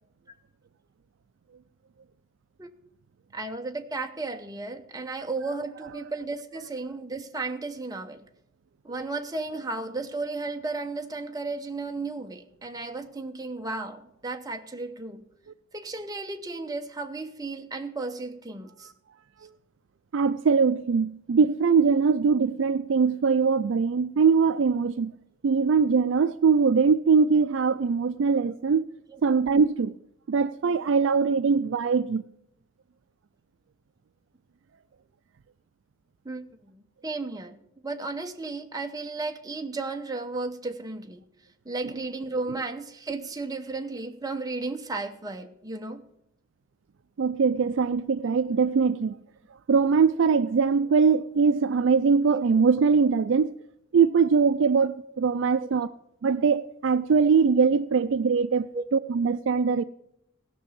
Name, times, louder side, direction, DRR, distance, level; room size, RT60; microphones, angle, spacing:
voice 1, 3.3-8.3 8.8-15.2 15.7-18.9 29.1-29.2 36.2-37.6 37.8-41.2 41.7-46.0 48.3-48.4 52.3-52.4 55.6-55.7 58.7-58.8, right 3 dB, 20° right, 0.8 m, -34 dB
voice 2, 20.1-25.1 25.4-28.8 29.2-29.9 30.3-32.2 47.2-49.1 49.7-53.5 53.9-55.9 56.2-58.7 58.9-59.8, right 5 dB, 60° right, 0.4 m, -22 dB
16.5 x 6.1 x 7.2 m
head